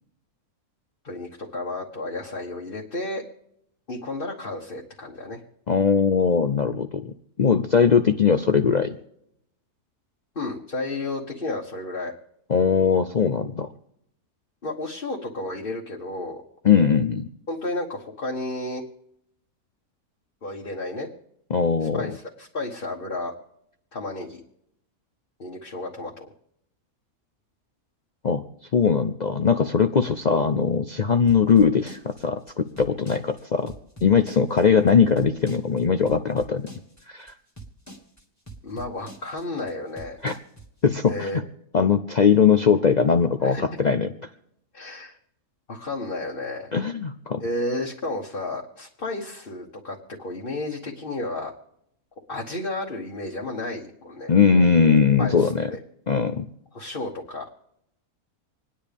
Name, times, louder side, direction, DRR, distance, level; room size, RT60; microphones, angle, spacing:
voice 1, 1.0-3.2 3.9-5.4 10.3-12.1 14.6-16.4 17.5-18.8 20.4-21.1 21.8-23.3 23.9-24.4 25.4-26.3 38.6-40.2 41.1-41.4 43.4-43.6 44.7-45.2 45.7-46.7 47.4-51.5 52.3-54.3 55.2-55.8 56.7-57.4, left 2 dB, 35° left, -2 dB, 1.5 m, -32 dB
voice 2, 5.7-7.1 7.4-9.0 12.5-13.7 16.6-17.3 21.5-22.1 28.2-28.4 28.7-33.7 34.0-36.7 37.1-37.3 40.2-40.4 40.8-41.3 41.7-44.1 46.7-47.4 54.3-55.7 56.1-56.5, left 6 dB, 65° left, 8 dB, 0.4 m, -20 dB
sound 1, 31.3-40.9, right 2 dB, 10° left, 1.7 m, -44 dB
27.0 x 10.0 x 3.5 m, 0.76 s
omnidirectional pair, 1.6 m